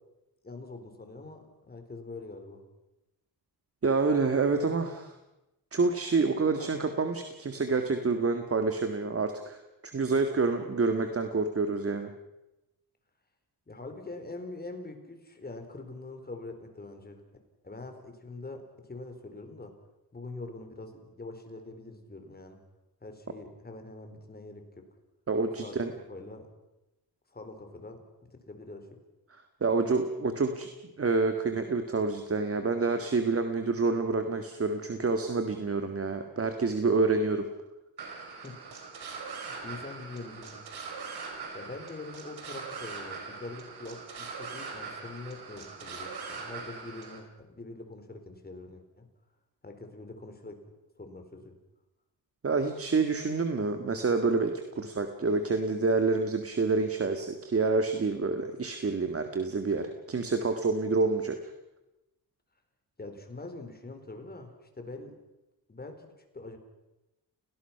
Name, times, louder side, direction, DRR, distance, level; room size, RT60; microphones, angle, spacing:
voice 1, 0.4-2.6 6.6-6.8 13.7-17.2 17.6-19.7 20.1-22.6 23.0-24.8 25.6-25.7 26.1-26.5 27.3-28.0 28.5-28.9 38.4-38.6 39.6-40.6 41.5-49.1 49.6-50.6 51.0-51.5 63.0-65.2 65.7-66.6, left 2 dB, 25° left, 5 dB, 4.2 m, -44 dB
voice 2, 3.8-5.1 5.7-9.6 9.9-12.1 25.3-25.9 29.6-30.7 31.0-37.5 52.4-61.4, right 4 dB, 35° right, 7 dB, 1.9 m, -28 dB
sound 1, 38.0-47.2, right 4 dB, 70° right, 4.9 m, -41 dB
29.5 x 19.0 x 5.9 m, 0.97 s
cardioid pair, 115°, 40 cm